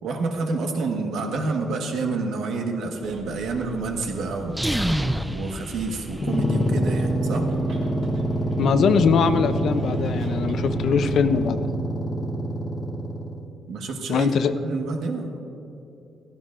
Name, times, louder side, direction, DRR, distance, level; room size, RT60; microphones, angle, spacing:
voice 1, 0.0-4.6 5.2-7.5 13.7-14.3 14.6-15.4, right 3 dB, 70° right, 3 dB, 1.4 m, -28 dB
Bus, 3.0-11.5, right 2 dB, 85° right, 2.0 m, -43 dB
sound 1, 4.5-6.6, equal, 5° right, 0.3 m, -27 dB
sound 2, 6.1-13.4, right 1 dB, 15° left, 1.0 m, -26 dB
voice 2, 8.6-11.7 14.1-14.5, left 6 dB, 55° left, 11 dB, 0.5 m, -21 dB
16.0 x 15.0 x 2.5 m, 2.8 s
cardioid pair, 175°, 0 cm